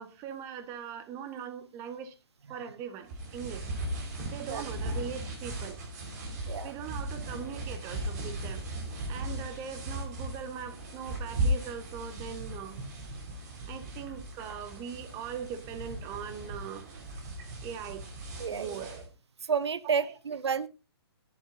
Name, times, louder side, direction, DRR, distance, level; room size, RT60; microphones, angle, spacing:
voice 1, 0.0-2.1 2.5-3.7 4.3-5.8 6.6-8.7 9.1-12.8 13.7-16.9 17.6-18.1 18.5-19.1 19.8-20.1, right 8 dB, 20° right, 9 dB, 1.4 m, -41 dB
sound 1, 3.1-19.1, right 1 dB, 40° right, 4.9 m, -37 dB
voice 2, 19.5-20.7, right 6 dB, 85° right, 16 dB, 0.9 m, -30 dB
17.5 x 11.0 x 2.7 m, 0.28 s
hypercardioid pair, 155°, 14 cm